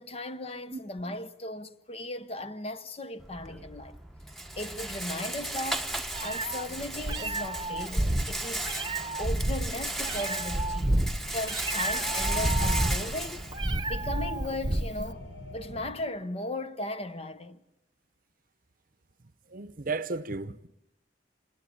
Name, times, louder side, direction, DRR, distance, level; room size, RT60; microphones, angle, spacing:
voice 1, 0.0-4.0 4.6-5.9 6.2-8.8 9.2-13.4 13.9-15.3 15.5-17.6, left 1 dB, 35° left, 0.9 m, -37 dB
Rattle, 3.2-14.2, right 1 dB, ahead, 1.1 m, -36 dB
Meow, 5.7-15.1, right 1 dB, 25° right, 1.0 m, -30 dB
sound 1, 6.7-15.9, equal, 80° left, 5.1 m, -47 dB
voice 2, 19.5-20.7, right 3 dB, 50° right, 0.9 m, -34 dB
27.0 x 21.0 x 8.7 m
head